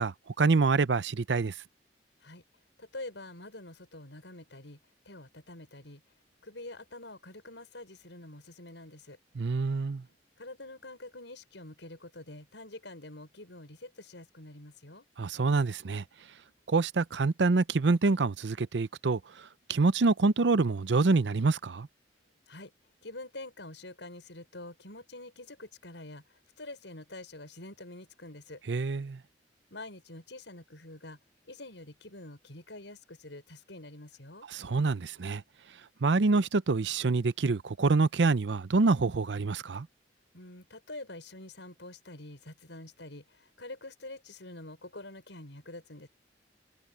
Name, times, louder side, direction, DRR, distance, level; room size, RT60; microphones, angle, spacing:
voice 1, 0.0-1.5 9.4-10.0 15.2-16.0 16.7-19.2 19.7-21.9 28.7-29.2 34.5-35.4 36.0-39.9, right 3 dB, 75° right, 0.6 m, -26 dB
voice 2, 2.8-4.8 5.0-6.0 6.4-9.2 10.4-15.1 22.5-22.7 23.0-26.2 26.6-28.6 29.7-31.2 31.5-34.5 40.3-46.1, left 2 dB, 80° left, 6.3 m, -46 dB
head